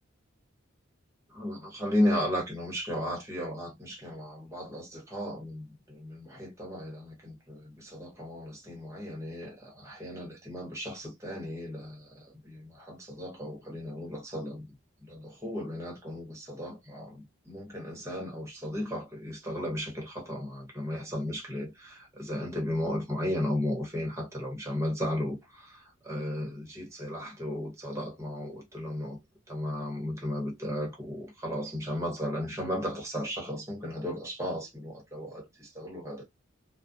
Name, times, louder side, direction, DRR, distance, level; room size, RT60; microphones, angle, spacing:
voice 1, 1.3-14.7 15.0-29.2 29.5-36.2, left 1 dB, 15° right, 0.9 m, -35 dB
2.4 x 2.1 x 2.6 m
head